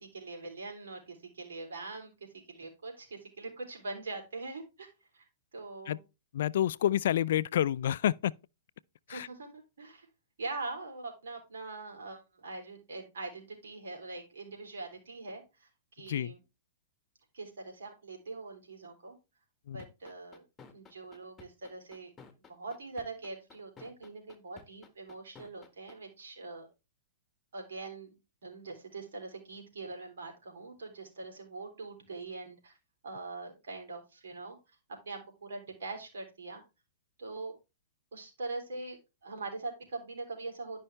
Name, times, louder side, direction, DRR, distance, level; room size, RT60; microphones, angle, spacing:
voice 1, 0.0-5.3 5.5-6.0 9.1-10.1 10.4-16.4 17.3-19.2 19.7-20.4 20.7-22.1 22.5-26.7 27.5-28.1 28.4-32.7 33.0-34.6 35.0-36.6 37.2-37.5 38.1-40.8, right 3 dB, 80° right, 3.2 m, -43 dB
voice 2, 6.3-8.3 9.1-9.3 16.1-16.3 19.7-19.8, left 11 dB, 70° left, 0.3 m, -28 dB
sound 1, 19.8-25.9, left 5 dB, 15° left, 1.3 m, -53 dB
11.0 x 5.4 x 3.3 m
hypercardioid pair, 130°, 0 cm